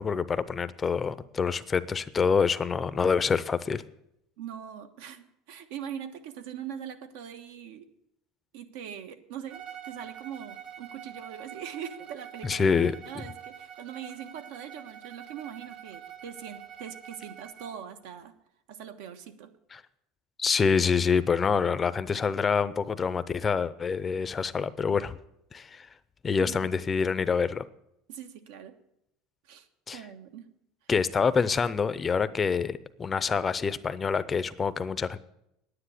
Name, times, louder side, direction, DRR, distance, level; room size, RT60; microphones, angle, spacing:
voice 1, 0.0-3.8 12.4-12.9 19.7-19.8 20.4-25.2 25.5-25.9 26.2-27.6 29.9-30.0 30.9-35.2, left 5 dB, 20° left, 15 dB, 0.5 m, -26 dB
voice 2, 4.4-7.9 8.5-18.3 18.7-19.5 26.4-26.7 28.1-28.7 29.4-29.7 29.9-30.5, right 9 dB, 80° right, 8 dB, 1.3 m, -42 dB
Bowed string instrument, 9.5-17.8, right 9 dB, 45° right, 1.4 m, -46 dB
9.9 x 9.7 x 8.3 m, 0.79 s
cardioid pair, 145°, 0 cm